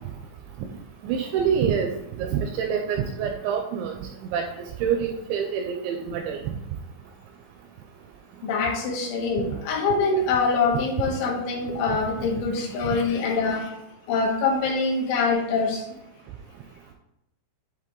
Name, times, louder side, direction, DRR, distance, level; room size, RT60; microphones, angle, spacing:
voice 1, 1.0-1.9 2.2-3.9 4.3-4.4 4.8-6.4, right 7 dB, 85° right, 4 dB, 2.6 m, -26 dB
voice 2, 8.4-13.7 14.1-15.9, left 4 dB, 75° left, -1 dB, 3.4 m, -24 dB
10.0 x 3.7 x 3.7 m, 0.86 s
omnidirectional pair, 5.7 m